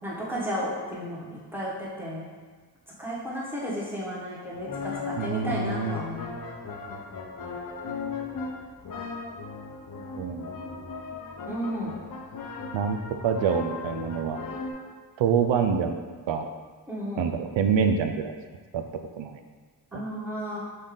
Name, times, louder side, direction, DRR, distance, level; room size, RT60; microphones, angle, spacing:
voice 1, 0.0-2.3 3.0-6.3 11.4-11.9 16.9-17.3 19.9-20.6, equal, 5° right, -7 dB, 1.2 m, -33 dB
sound 1, 4.5-14.7, left 4 dB, 50° left, 0.6 m, -37 dB
voice 2, 5.2-6.1 10.2-10.6 12.7-14.4 15.2-16.0 16.3-16.5 17.2-18.3 18.7-18.8 19.2-19.4 19.9-20.0, right 6 dB, 90° right, 6 dB, 0.5 m, -26 dB
5.3 x 2.7 x 3.7 m, 1.5 s
wide cardioid pair, 95°, 43 cm